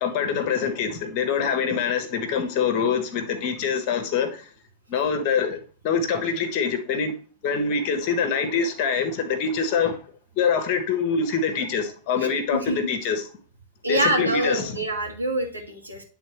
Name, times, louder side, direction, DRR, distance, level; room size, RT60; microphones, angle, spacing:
voice 1, 0.0-4.3 4.9-5.6 5.8-7.1 7.4-10.0 10.4-12.6 12.9-13.2 13.9-14.8, left 6 dB, 45° left, 1.2 m, -24 dB
voice 2, 12.2-12.8 13.8-16.0, right 1 dB, 85° right, 1.5 m, -26 dB
10.0 x 3.8 x 3.1 m
figure-of-eight pair, 90°, 0 cm